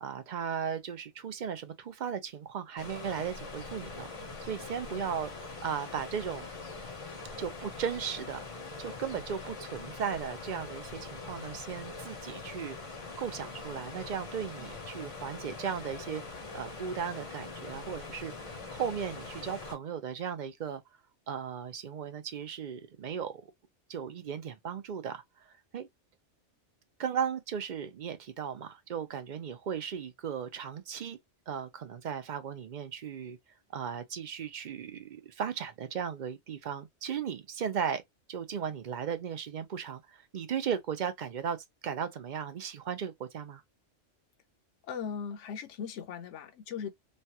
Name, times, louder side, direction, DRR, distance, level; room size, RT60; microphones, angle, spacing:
voice 1, 0.0-4.1 4.4-5.3 5.6-6.5 7.4-8.4 8.8-12.8 13.2-16.2 16.5-20.8 21.3-23.4 23.9-25.5 25.7-25.9 27.0-31.2 31.5-33.4 33.7-38.0 38.3-41.6 41.8-43.6, right 7 dB, 50° right, 0.6 m, -36 dB
sound 1, 2.8-19.8, left 3 dB, 35° left, 0.7 m, -43 dB
voice 2, 44.8-46.9, left 7 dB, 80° left, 1.0 m, -38 dB
3.2 x 2.2 x 2.7 m
omnidirectional pair, 1.2 m